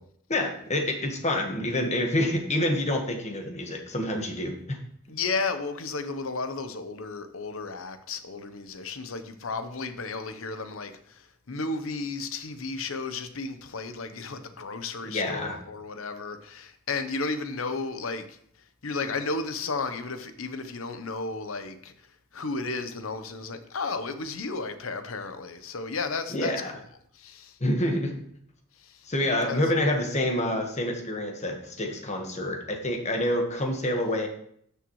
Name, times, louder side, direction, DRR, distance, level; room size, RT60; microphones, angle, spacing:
voice 1, 0.3-4.8 15.0-15.6 26.3-26.7 27.6-28.2 29.1-34.3, left 1 dB, 35° left, 1.4 m, -27 dB
voice 2, 5.1-18.4 18.8-22.1 22.3-26.8 27.1-27.6 28.8-29.1 29.4-29.6, left 3 dB, 70° left, 0.8 m, -33 dB
12.5 x 6.7 x 3.1 m
head